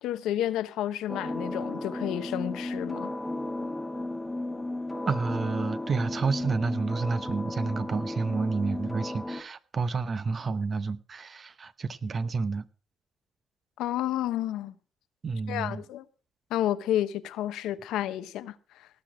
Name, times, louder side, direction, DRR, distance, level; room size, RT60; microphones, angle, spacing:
voice 1, 0.0-3.1 13.8-14.7 15.5-16.0 16.5-18.9, left 12 dB, 90° left, 0.9 m, -31 dB
sound 1, 1.1-9.4, left 2 dB, 10° left, 1.2 m, -34 dB
voice 2, 5.1-12.7 15.2-15.8, right 4 dB, 40° right, 0.9 m, -30 dB
18.5 x 6.5 x 6.1 m
cardioid pair, 90°, 0 cm